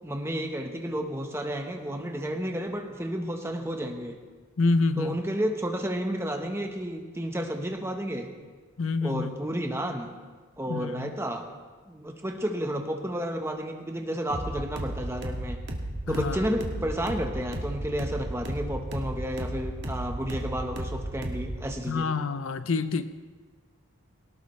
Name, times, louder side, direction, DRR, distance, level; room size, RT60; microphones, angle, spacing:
voice 1, 0.0-4.2 5.0-8.3 9.0-10.1 10.6-11.5 11.9-15.6 16.1-22.1, equal, 10° right, 3 dB, 1.1 m, -31 dB
voice 2, 4.6-5.2 8.8-9.3 10.7-11.1 16.1-16.5 21.9-23.1, left 3 dB, 65° left, 11 dB, 0.6 m, -27 dB
sound 1, 14.3-21.7, right 1 dB, 50° right, 1.6 m, -34 dB
18.5 x 17.5 x 3.2 m, 1.4 s
head